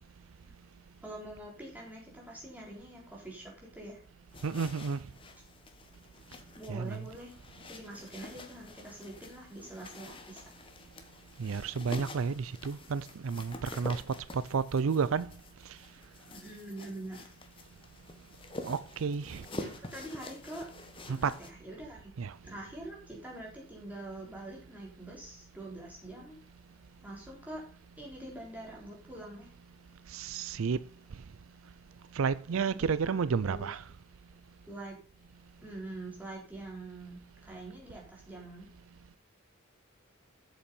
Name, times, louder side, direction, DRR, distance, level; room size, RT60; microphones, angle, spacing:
voice 1, 1.0-4.0 6.6-10.6 16.3-17.3 19.5-20.7 21.1-22.1 22.4-26.4 27.0-27.6 28.0-29.5 32.5-33.7 34.7-35.0 35.6-38.7, right 1 dB, 5° right, 3.9 m, -45 dB
sound 1, 4.3-21.5, left 2 dB, 25° left, 1.2 m, -47 dB
voice 2, 4.4-5.0 6.7-7.0 11.4-14.0 14.3-15.3 18.6-19.4 21.1-21.3 22.2-22.3 30.1-30.8 32.1-33.8, right 5 dB, 75° right, 0.4 m, -31 dB
8.3 x 7.2 x 6.9 m
head